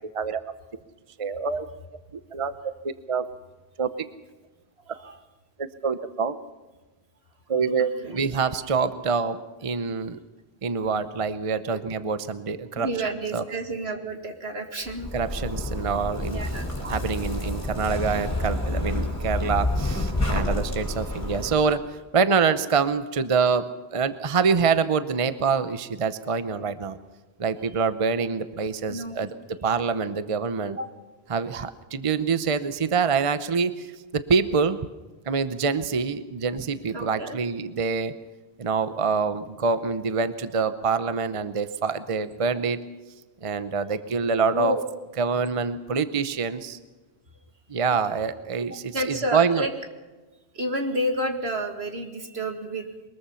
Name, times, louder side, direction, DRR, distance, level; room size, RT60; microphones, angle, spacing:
voice 1, 1.2-1.7 2.3-2.5 2.8-3.2 3.8-3.9 5.6-6.4 7.5-10.2 10.6-13.4 15.1-23.6 23.9-27.0 27.4-29.3 29.6-30.8 31.3-34.8 35.3-38.1 38.6-42.8 43.4-44.8 45.2-46.8 47.7-49.7, right 5 dB, 35° right, 12 dB, 0.8 m, -26 dB
voice 2, 4.9-5.2 8.0-8.2 12.8-15.1 16.3-16.6 28.9-29.2 30.8-30.9 36.9-37.4 44.5-44.9 48.9-49.7 50.5-52.9, right 1 dB, 75° right, 5 dB, 2.4 m, -30 dB
Zipper (clothing), 14.9-21.5, left 1 dB, 15° left, 4.9 m, -29 dB
22.5 x 21.0 x 5.7 m, 1.2 s
omnidirectional pair, 1.1 m